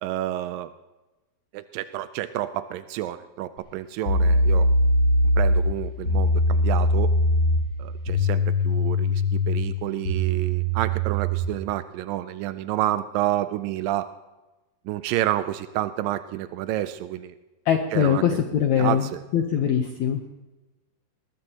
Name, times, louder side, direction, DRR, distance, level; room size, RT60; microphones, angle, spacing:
voice 1, 0.0-0.7 1.5-4.7 5.4-7.1 7.8-14.1 14.9-17.3 17.9-18.4 18.8-19.2, right 14 dB, 90° right, 11 dB, 1.9 m, -29 dB
sound 1, 3.6-3.7 4.0-11.6, left 1 dB, 25° left, 3.0 m, -22 dB
voice 2, 17.7-19.1 19.3-20.2, left 8 dB, 85° left, 4 dB, 1.6 m, -22 dB
20.5 x 20.5 x 2.9 m, 1.1 s
omnidirectional pair, 4.6 m